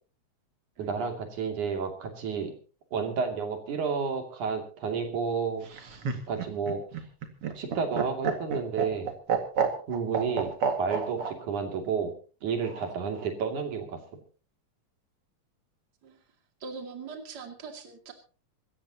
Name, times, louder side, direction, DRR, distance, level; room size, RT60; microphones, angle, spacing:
voice 1, 0.8-2.5 2.9-5.7 6.3-6.8 7.6-9.1 9.9-10.5 10.8-12.1 12.4-14.0, right 5 dB, 85° right, 4 dB, 4.2 m, -31 dB
Laughter, 5.6-11.3 12.6-13.3, right 6 dB, 50° right, 2.8 m, -30 dB
voice 2, 16.6-18.1, right 4 dB, 35° right, 4 dB, 2.7 m, -42 dB
26.0 x 14.0 x 2.9 m, 0.37 s
omnidirectional pair, 3.4 m